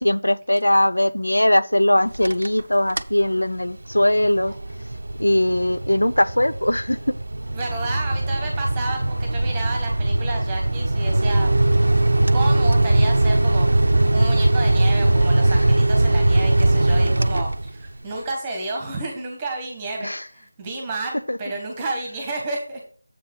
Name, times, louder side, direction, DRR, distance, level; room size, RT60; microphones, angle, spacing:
voice 1, 0.0-4.5 5.2-7.0 20.0-20.2 21.3-21.4, left 1 dB, 85° left, 0.5 m, -20 dB
sound 1, 2.1-2.6 2.9-3.2 3.7-18.0, right 2 dB, 65° right, 0.6 m, -20 dB
voice 2, 7.5-11.5 11.9-22.8, right 2 dB, 15° right, 1.3 m, -31 dB
7.6 x 4.6 x 5.4 m
figure-of-eight pair, 165°, 0 cm